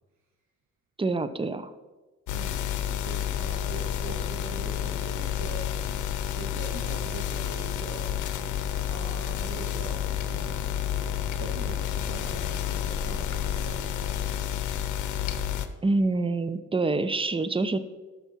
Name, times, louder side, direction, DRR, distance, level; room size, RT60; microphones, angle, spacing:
voice 1, 1.0-1.7 15.8-17.8, right 3 dB, 15° right, 13 dB, 0.8 m, -26 dB
sound 1, 2.3-15.7, left 10 dB, 75° left, 0.9 m, -30 dB
voice 2, 2.3-5.7 6.3-8.1 8.9-10.6 11.4-14.6, right 4 dB, 65° right, 0 dB, 1.7 m, -42 dB
12.5 x 6.0 x 5.8 m, 1.2 s
cardioid pair, 90°, 30 cm